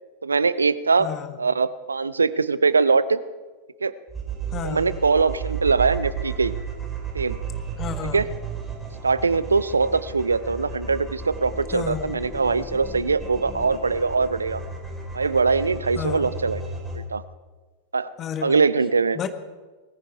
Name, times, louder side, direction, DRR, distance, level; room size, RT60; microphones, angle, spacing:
voice 1, 0.2-1.1 1.4-3.2 3.8-3.9 4.6-6.5 7.1-7.4 8.1-8.3 9.0-14.6 15.1-16.6 16.9-17.2 17.9-18.1 18.4-19.2, right 4 dB, 75° right, 16 dB, 0.7 m, -22 dB
voice 2, 1.0-1.4 4.5-4.9 7.8-8.2 11.7-12.1 15.9-16.3 18.2-18.7 19.1-19.3, left 8 dB, 30° left, 9 dB, 1.5 m, -31 dB
sound 1, 4.1-17.0, right 5 dB, 10° right, 4.3 m, -33 dB
20.5 x 14.5 x 4.6 m, 1.3 s
figure-of-eight pair, 90°, 0 cm